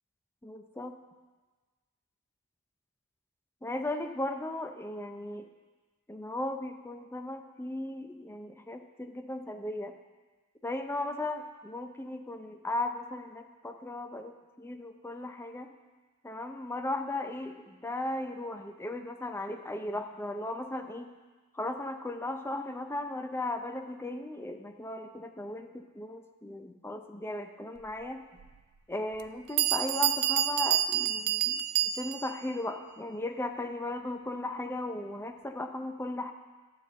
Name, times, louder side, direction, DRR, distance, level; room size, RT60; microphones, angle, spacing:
voice 1, 0.4-1.0 3.6-5.5 6.1-10.0 10.6-15.7 16.2-21.1 21.5-28.2 28.9-36.3, left 2 dB, 10° left, 6 dB, 0.5 m, -36 dB
Bell, 28.4-28.5 29.2-29.3 29.6-32.4, right 12 dB, 90° right, 0.4 m, -28 dB
11.5 x 4.1 x 7.5 m, 1.3 s
head